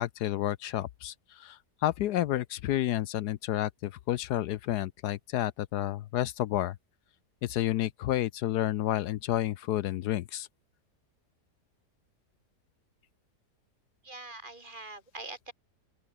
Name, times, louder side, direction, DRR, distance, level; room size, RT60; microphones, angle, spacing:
voice 1, 0.0-6.8 7.4-10.5, left 13 dB, 75° left, 1.2 m, -30 dB
voice 2, 14.0-15.5, right 2 dB, 30° right, 2.8 m, -43 dB
open air
omnidirectional pair, 1.8 m